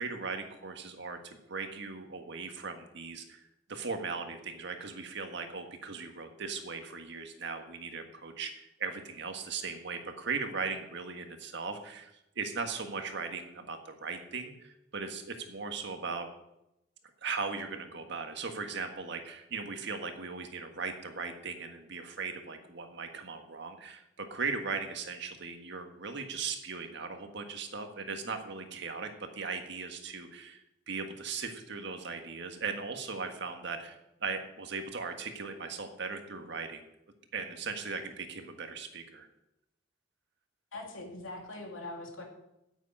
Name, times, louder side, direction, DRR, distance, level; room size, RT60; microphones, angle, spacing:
voice 1, 0.0-3.4 3.7-16.3 17.2-30.6 30.9-33.9 34.2-36.8 37.3-39.3, right 4 dB, 60° right, 6 dB, 1.6 m, -38 dB
voice 2, 40.7-42.2, left 2 dB, 85° left, 1 dB, 2.9 m, -42 dB
9.1 x 8.4 x 8.7 m, 0.88 s
head